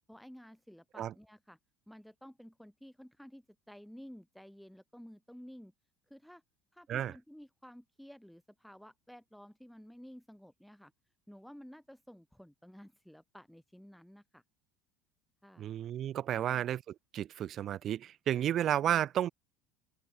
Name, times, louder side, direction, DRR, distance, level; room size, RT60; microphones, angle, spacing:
voice 1, 0.1-1.6 1.9-5.7 6.1-6.4 6.7-10.9 11.3-14.4 15.4-15.7 16.3-16.7 18.8-19.1, equal, ahead, 1.2 m, -53 dB
voice 2, 15.6-16.8 17.1-19.3, right 11 dB, 40° right, 0.4 m, -32 dB
cardioid pair, 135°, 0 cm